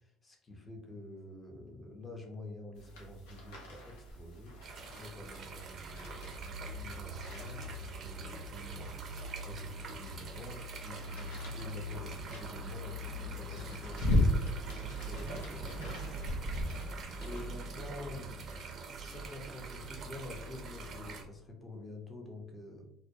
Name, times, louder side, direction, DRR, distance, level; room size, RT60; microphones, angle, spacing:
voice 1, 0.0-4.5 4.9-8.9 9.4-14.3 14.8-16.0 17.1-18.7 18.9-22.9, left 2 dB, 25° left, 2 dB, 0.7 m, -48 dB
sound 1, 2.7-17.5, left 1 dB, 80° left, 0.6 m, -38 dB
sound 2, 4.6-21.2, right 2 dB, 50° right, 0.5 m, -42 dB
2.2 x 2.1 x 2.7 m, 0.75 s
hypercardioid pair, 70°, 0 cm